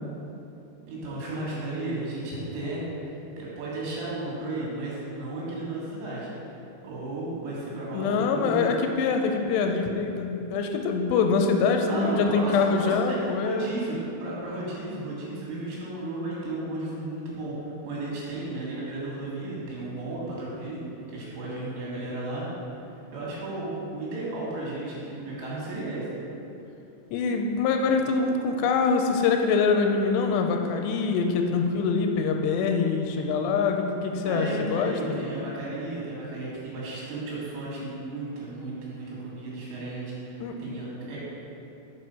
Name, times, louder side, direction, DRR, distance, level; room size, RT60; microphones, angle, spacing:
voice 1, 0.9-6.3 6.8-8.7 11.9-17.5 17.8-20.8 21.1-22.5 23.1-26.0 34.3-41.2, right 2 dB, 85° right, -6 dB, 4.2 m, -34 dB
voice 2, 7.9-13.7 27.1-35.2 40.4-40.6, left 5 dB, 85° left, 4 dB, 2.7 m, -24 dB
7.7 x 4.8 x 5.5 m, 2.8 s
omnidirectional pair, 5.0 m